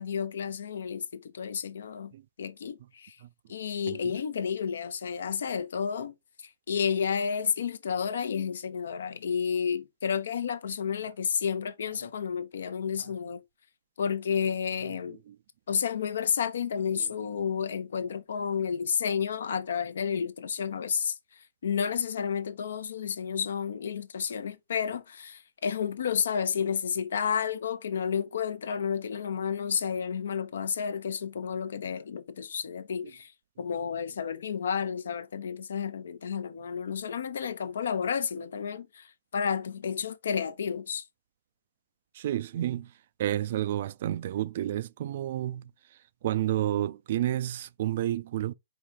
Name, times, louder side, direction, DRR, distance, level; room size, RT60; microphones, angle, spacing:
voice 1, 0.0-3.2 3.5-6.1 6.7-13.4 14.0-15.2 15.7-21.2 21.6-33.3 33.6-39.1 39.3-41.0, left 7 dB, 75° left, 0.7 m, -31 dB
voice 2, 3.9-4.2 13.0-13.1 14.9-15.4 16.9-17.1 42.1-42.9 43.2-45.7 46.2-48.5, right 12 dB, 55° right, 0.3 m, -31 dB
4.7 x 2.8 x 3.6 m
hypercardioid pair, 140°, 0 cm